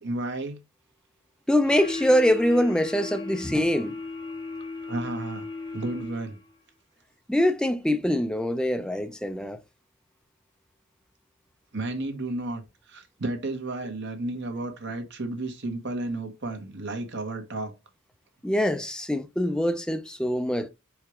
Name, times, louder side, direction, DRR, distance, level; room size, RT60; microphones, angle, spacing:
voice 1, 0.0-0.6 4.8-5.5 5.7-6.4 11.7-17.7, right 2 dB, 55° right, 1.4 m, -32 dB
voice 2, 1.5-3.9 7.3-9.6 18.4-20.7, equal, 5° left, 0.5 m, -24 dB
sound 1, 1.6-6.5, left 3 dB, 20° left, 1.6 m, -36 dB
4.7 x 4.5 x 4.9 m
head